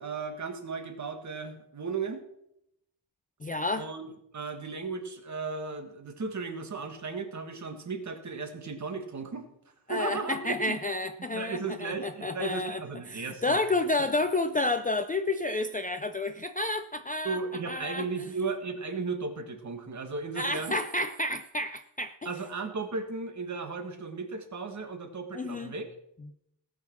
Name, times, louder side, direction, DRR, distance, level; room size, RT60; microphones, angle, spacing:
voice 1, 0.0-2.2 3.8-4.1 4.3-9.5 9.9-10.8 11.2-13.6 17.2-20.8 22.2-25.8, right 4 dB, 40° right, 7 dB, 1.6 m, -35 dB
voice 2, 3.4-3.9 9.9-12.8 13.1-17.4 17.7-18.1 20.4-22.3 25.3-25.7, left 2 dB, 20° left, 9 dB, 0.4 m, -30 dB
18.0 x 6.4 x 6.0 m, 0.79 s
wide cardioid pair, 175°, 45 cm